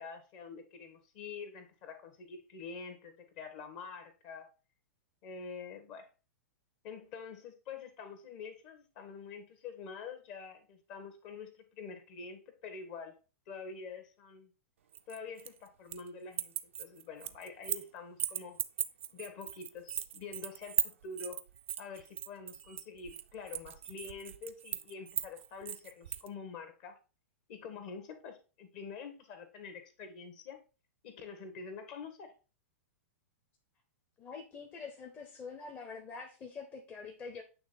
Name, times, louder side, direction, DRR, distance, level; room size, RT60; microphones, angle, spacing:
voice 1, 0.0-4.5 5.2-6.1 6.8-13.1 13.5-14.5 15.1-16.5 16.8-18.6 19.1-21.4 21.8-27.0 27.5-30.6 31.0-32.3, left 5 dB, 40° left, 8 dB, 1.3 m, -46 dB
sound 1, 14.9-16.1 16.3-17.9 18.2-26.3, right 9 dB, 55° right, 0.5 m, -38 dB
voice 2, 34.2-37.4, left 5 dB, 20° left, 3 dB, 0.9 m, -45 dB
8.6 x 3.3 x 4.1 m, 0.34 s
figure-of-eight pair, 100°, 8 cm